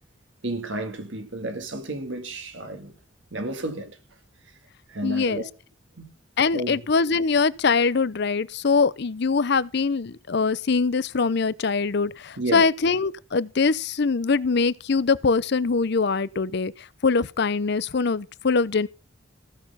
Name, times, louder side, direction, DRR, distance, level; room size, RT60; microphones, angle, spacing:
voice 1, 0.4-3.0 3.3-4.0 4.9-5.5 6.0-6.1 6.5-6.8 12.4-12.7, right 2 dB, 65° right, 1.9 m, -32 dB
voice 2, 5.0-5.4 6.4-18.9, left 4 dB, 55° left, 0.6 m, -23 dB
15.5 x 6.7 x 5.6 m
head